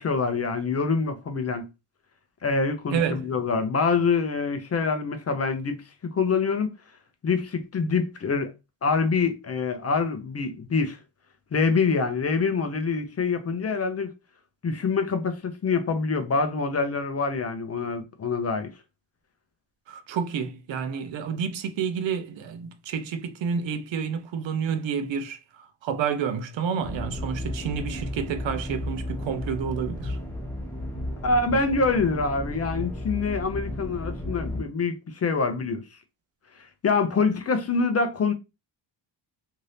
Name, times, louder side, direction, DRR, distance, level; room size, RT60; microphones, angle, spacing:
voice 1, 0.0-1.7 2.4-6.7 7.2-8.5 8.8-11.0 11.5-14.1 14.6-18.7 31.2-35.8 36.8-38.3, left 4 dB, 35° left, 0.5 m, -25 dB
voice 2, 2.9-3.3 19.9-25.4 25.8-30.2, right 7 dB, 70° right, 0.6 m, -29 dB
sound 1, 26.8-34.6, left 1 dB, 5° left, 0.8 m, -33 dB
2.7 x 2.6 x 3.3 m
cardioid pair, 145°, 48 cm